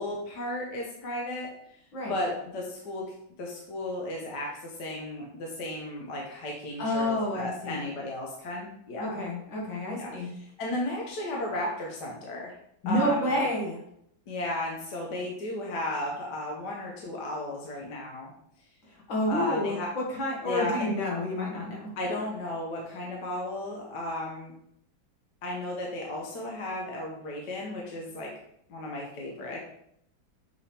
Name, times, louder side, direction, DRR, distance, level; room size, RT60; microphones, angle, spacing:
voice 1, 0.0-1.5 2.1-3.0 3.4-9.2 10.0-12.6 12.8-13.3 14.3-18.3 19.3-19.9 20.4-20.9 22.0-24.5 25.4-28.3 28.7-29.6, left 1 dB, 65° left, -2 dB, 1.5 m, -34 dB
voice 2, 6.8-7.8 9.0-10.3 12.8-13.8 19.1-21.9, left 1 dB, 80° left, -3 dB, 2.5 m, -29 dB
7.1 x 3.5 x 4.3 m, 0.73 s
omnidirectional pair, 2.1 m